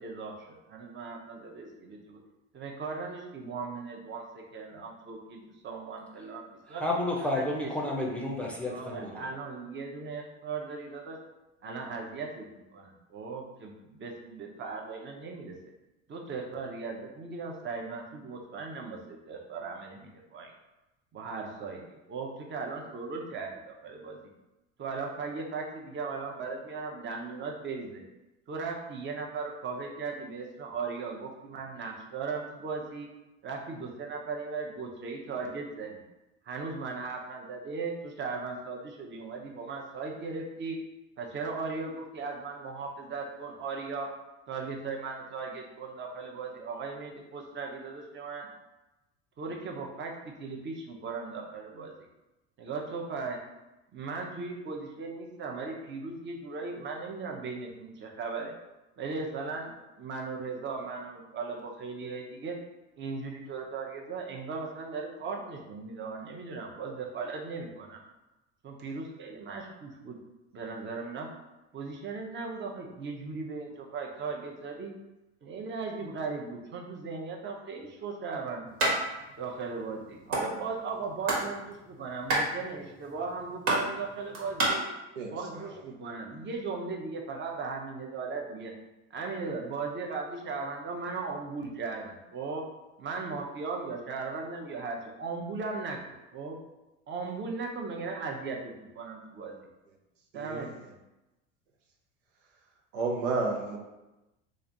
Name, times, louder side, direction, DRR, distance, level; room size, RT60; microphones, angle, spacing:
voice 1, 0.0-2.2 2.5-6.8 7.2-7.7 8.7-11.2 11.6-15.6 16.1-20.5 21.1-24.2 24.8-28.0 28.5-33.1 33.4-36.0 36.4-40.8 41.2-44.1 44.5-48.5 49.4-51.9 52.6-53.4 53.9-58.5 59.0-59.7 60.0-62.6 63.0-68.0 68.6-70.2 70.5-71.3 71.7-74.9 75.4-78.8 79.4-84.8 85.3-88.7 89.1-92.6 93.0-96.6 97.1-99.6 100.3-101.0, right 4 dB, 30° right, 1 dB, 0.8 m, -37 dB
voice 2, 6.8-9.2, left 1 dB, 5° left, -3 dB, 0.6 m, -31 dB
sound 1, 78.8-78.9 79.3-79.4 79.6-80.4 80.9-81.5 81.7-84.7, right 2 dB, 60° right, 1.5 m, -28 dB
voice 3, 85.1-85.8 100.3-100.7 102.9-103.8, right 3 dB, 85° right, -1 dB, 0.9 m, -32 dB
3.2 x 2.5 x 3.9 m, 1.0 s
supercardioid pair, 95°, 36 cm